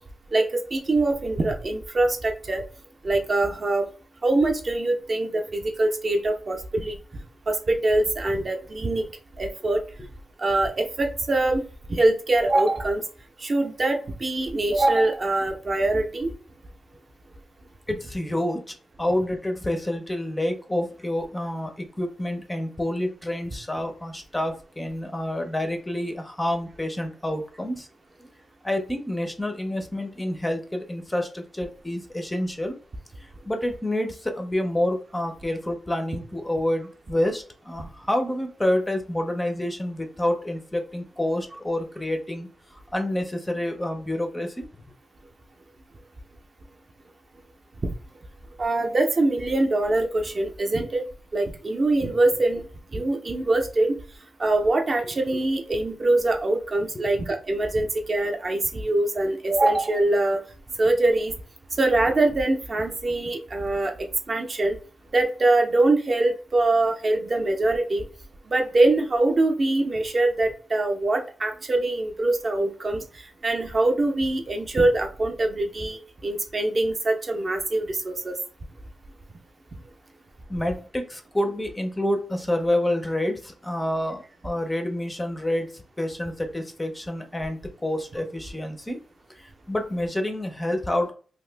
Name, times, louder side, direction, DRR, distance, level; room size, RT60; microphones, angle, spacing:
voice 1, 0.3-2.6 3.0-3.9 4.2-7.0 7.5-9.0 9.4-9.8 10.4-11.6 11.9-13.0 13.4-16.3 47.8-47.9 48.6-51.0 51.3-52.6 52.9-54.0 54.4-60.4 60.8-61.3 61.8-63.9 64.3-64.8 65.1-68.0 68.5-78.3, right 2 dB, 35° right, 4 dB, 0.5 m, -23 dB
voice 2, 17.9-27.9 28.2-28.3 28.6-32.8 33.2-44.7 53.0-53.1 56.9-57.0 80.5-89.0 89.3-91.1, left 1 dB, 10° left, 5 dB, 0.5 m, -28 dB
2.8 x 2.5 x 3.3 m, 0.39 s
wide cardioid pair, 135°, 0 cm